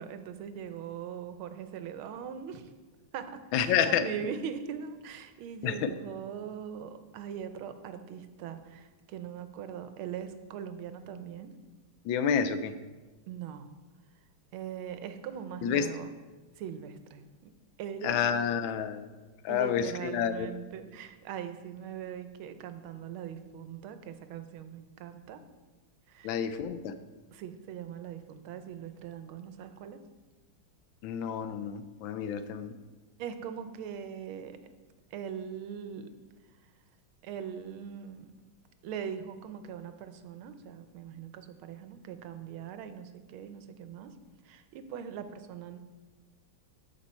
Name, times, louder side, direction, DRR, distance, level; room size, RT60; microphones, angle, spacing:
voice 1, 0.0-2.7 3.1-11.5 13.3-13.7 14.5-16.1 16.6-17.5 17.8-18.2 19.5-25.4 26.1-26.5 27.3-30.0 33.2-34.6 35.1-36.1 37.2-38.3 38.8-44.1 44.4-45.8, right 8 dB, 85° right, 9 dB, 1.6 m, -41 dB
voice 2, 3.5-4.1 5.6-5.8 12.1-12.7 15.6-15.9 18.0-19.1 19.4-20.5 26.2-26.9 31.0-32.7, left 8 dB, 75° left, 11 dB, 1.3 m, -29 dB
13.0 x 5.3 x 4.3 m, 1.2 s
omnidirectional pair, 2.2 m